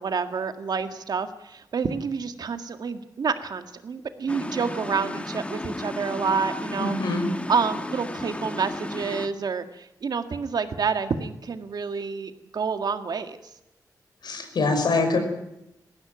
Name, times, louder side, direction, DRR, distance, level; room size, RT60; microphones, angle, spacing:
voice 1, 0.0-6.9 7.5-13.4, right 5 dB, 70° right, 8 dB, 1.8 m, -28 dB
sound 1, 4.3-9.3, left 1 dB, 15° left, 1.6 m, -34 dB
voice 2, 6.8-7.3 14.2-15.2, left 3 dB, 85° left, 5 dB, 5.3 m, -24 dB
20.0 x 16.0 x 9.2 m, 0.86 s
wide cardioid pair, 90°, 7 cm